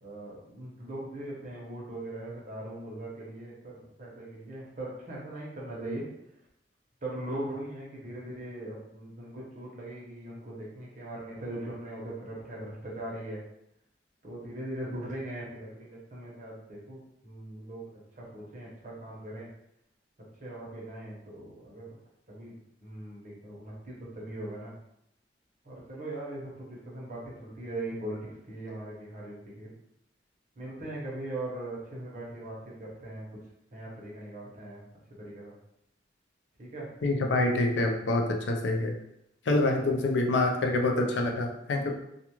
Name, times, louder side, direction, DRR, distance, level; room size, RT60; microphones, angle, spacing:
voice 1, 0.0-6.0 7.0-13.4 14.2-19.5 20.4-22.0 22.3-22.5 22.8-24.7 25.6-29.7 30.6-33.3 33.7-34.8 35.2-35.5 36.6-36.9, right 1 dB, 45° right, -5 dB, 0.9 m, -40 dB
voice 2, 37.0-38.9 39.5-41.9, left 2 dB, 85° left, 2 dB, 0.5 m, -26 dB
2.3 x 2.3 x 2.9 m, 0.80 s
head